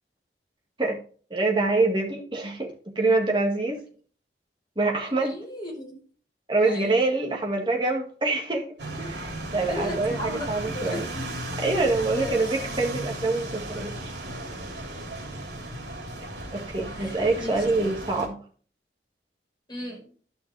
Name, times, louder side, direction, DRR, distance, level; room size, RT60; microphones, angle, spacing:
voice 1, 1.3-3.8 4.8-5.4 6.5-8.7 9.0-11.1 11.6-13.9 16.5-18.4, right 3 dB, 25° right, 2.0 m, -25 dB
voice 2, 5.0-6.0 6.7-7.0 9.7-11.4 11.9-12.8 17.0-17.1 17.4-17.6 19.7-20.1, left 1 dB, 25° left, 4.5 m, -36 dB
sound 1, 8.8-18.3, right 1 dB, 75° right, 3.0 m, -35 dB
12.5 x 5.8 x 3.4 m
head